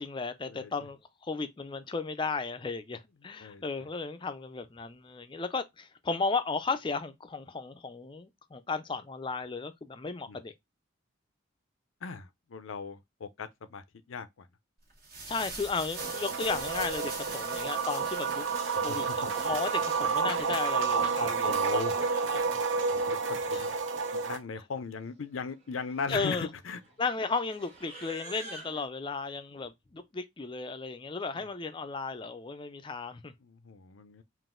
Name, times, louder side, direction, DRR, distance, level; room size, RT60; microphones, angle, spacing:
voice 1, 0.0-10.5 15.3-18.4 18.8-22.1 22.3-22.6 23.5-23.6 26.1-26.5 27.0-33.3, left 4 dB, 25° left, 0.4 m, -35 dB
voice 2, 12.0-14.5 18.7-19.3 21.2-21.9 23.1-23.2 23.5-23.7 24.1-26.8 31.4-31.5 33.4-34.2, left 5 dB, 85° left, 0.6 m, -38 dB
sound 1, 14.9-20.1, right 3 dB, 50° right, 1.4 m, -43 dB
sound 2, 16.0-24.4, right 5 dB, 70° right, 0.8 m, -30 dB
Livestock farm animals working animals, 19.2-20.1 21.0-22.3 23.3-23.4 23.6-24.1 24.4-24.6 25.3-28.9, right 1 dB, 35° right, 1.6 m, -50 dB
4.0 x 2.5 x 3.7 m
head